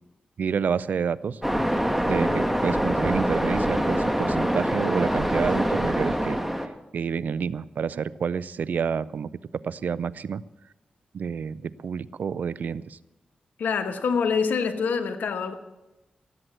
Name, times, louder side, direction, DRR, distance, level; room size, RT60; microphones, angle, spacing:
voice 1, 0.4-1.4 2.0-6.4 6.9-9.3 9.6-10.4 11.1-13.0, right 6 dB, 75° right, 19 dB, 0.4 m, -29 dB
Waves surf, 1.4-6.7, equal, 5° right, 1.8 m, -24 dB
voice 2, 13.6-15.5, left 5 dB, 85° left, 8 dB, 1.2 m, -25 dB
17.5 x 7.8 x 7.7 m, 0.98 s
cardioid pair, 50°, 3 cm